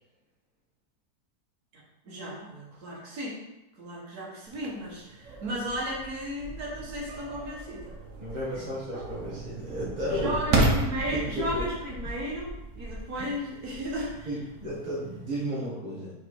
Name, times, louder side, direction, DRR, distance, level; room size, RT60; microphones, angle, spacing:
voice 1, 1.7-3.4 3.8-8.0 8.5-8.7 10.1-14.3, equal, 70° right, -4 dB, 2.1 m, -35 dB
sound 1, 4.5-15.4, right 2 dB, 55° right, 1.1 m, -33 dB
voice 2, 8.2-10.3 11.1-11.6 14.3-16.1, equal, 30° right, -8 dB, 1.6 m, -33 dB
4.8 x 4.4 x 4.8 m, 0.93 s
omnidirectional pair, 1.7 m